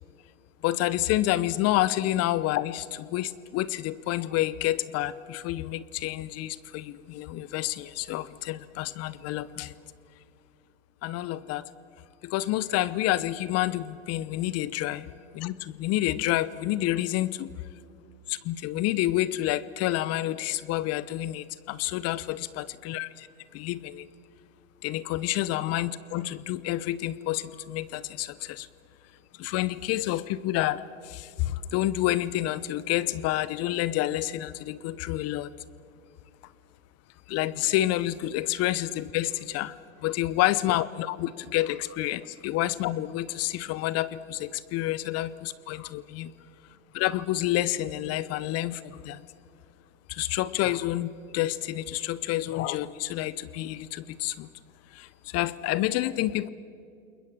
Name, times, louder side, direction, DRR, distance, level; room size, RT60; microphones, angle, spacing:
voice 1, 0.6-9.7 11.0-11.7 12.2-15.1 15.3-17.5 18.3-23.3 23.5-24.1 24.8-28.7 29.4-35.5 37.3-39.8 40.0-46.3 46.9-49.2 50.1-54.5 54.9-56.5, left 15 dB, 40° left, 18 dB, 0.8 m, -29 dB
28.5 x 21.5 x 7.4 m, 2.5 s
hypercardioid pair, 95°, 40 cm